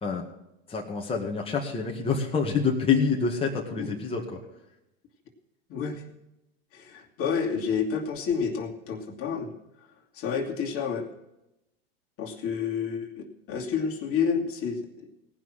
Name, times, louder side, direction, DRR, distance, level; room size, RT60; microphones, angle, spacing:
voice 1, 0.7-4.4, left 5 dB, 15° left, -1 dB, 2.1 m, -27 dB
voice 2, 5.7-6.0 6.7-9.5 10.1-11.0 12.2-15.1, left 6 dB, 45° left, 1 dB, 2.5 m, -29 dB
18.0 x 6.1 x 7.6 m, 0.89 s
hypercardioid pair, 110°, 31 cm